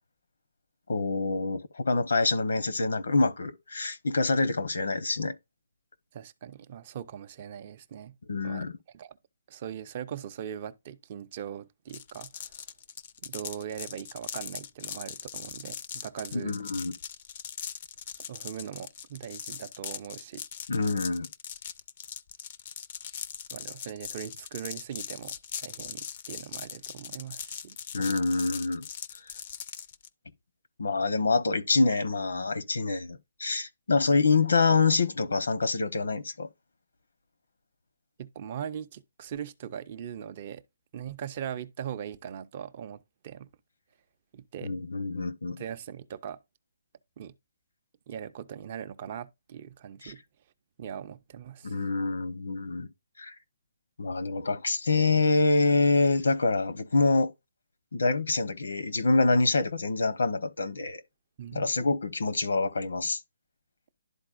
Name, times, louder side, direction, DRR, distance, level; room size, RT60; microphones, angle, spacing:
voice 1, 0.9-5.3 8.3-8.7 16.3-16.9 20.7-21.3 27.9-28.8 30.8-36.5 44.6-45.6 50.0-50.1 51.6-52.9 53.2-53.3 54.0-57.3 57.9-61.0 61.5-63.2, left 3 dB, 90° left, 1.0 m, -26 dB
voice 2, 6.1-8.1 8.4-9.2 9.5-12.5 13.2-16.5 18.3-20.4 23.5-27.8 38.2-40.6 40.9-43.5 44.3-44.7 45.6-46.4 47.2-47.3 48.1-50.2 50.8-51.8 61.4-61.7, right 9 dB, 30° right, 0.4 m, -40 dB
sound 1, 11.9-30.1, left 8 dB, 30° left, 0.4 m, -40 dB
11.5 x 4.2 x 2.5 m
hypercardioid pair, 170°, 0 cm